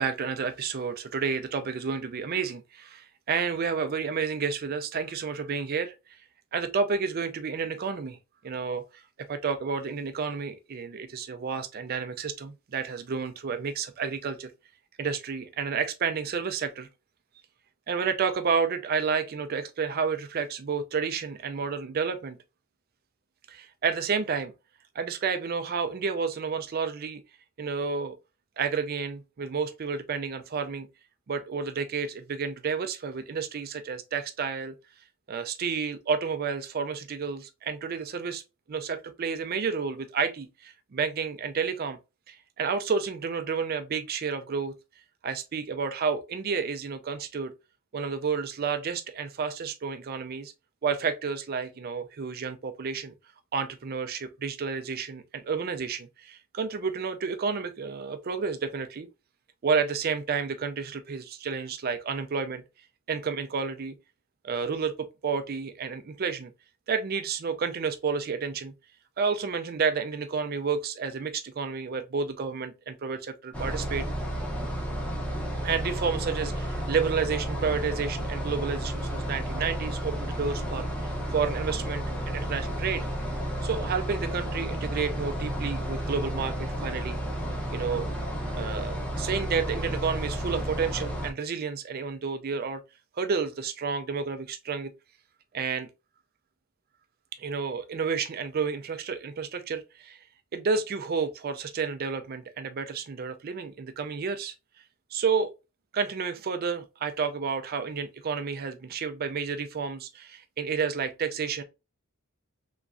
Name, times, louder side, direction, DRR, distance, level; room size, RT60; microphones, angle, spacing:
voice 1, 0.0-6.2 6.5-8.2 8.4-9.0 9.3-14.5 15.0-16.9 17.9-22.4 23.5-24.5 24.9-27.2 27.6-28.2 28.6-30.9 31.3-34.8 35.3-38.4 38.7-42.0 42.3-44.7 45.2-47.5 47.9-50.5 50.8-53.1 53.5-59.1 59.6-62.6 63.1-64.0 64.4-64.9 65.2-66.5 66.9-68.7 69.2-74.1 75.6-83.1 83.6-87.2 87.7-88.1 88.6-92.8 93.1-94.9 95.5-95.9 97.4-100.2 100.5-104.5 105.1-105.5 105.9-111.6, right 5 dB, 45° right, 0.4 m, -30 dB
sound 1, 73.5-91.3, right 1 dB, 5° left, 0.8 m, -32 dB
3.5 x 3.0 x 2.5 m
head